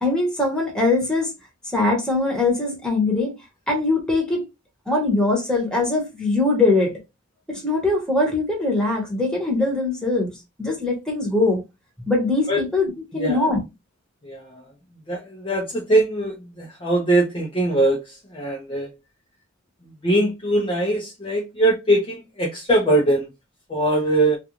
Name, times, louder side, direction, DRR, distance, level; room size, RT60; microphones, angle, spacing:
voice 1, 0.0-1.3 1.7-3.3 3.7-4.4 4.9-6.9 7.5-10.3 10.6-11.6 12.1-13.6, left 2 dB, 5° left, 1.0 m, -21 dB
voice 2, 14.2-14.6 15.1-18.9 20.0-23.3 23.7-24.4, right 1 dB, 25° left, 0.6 m, -21 dB
2.4 x 2.3 x 2.9 m
head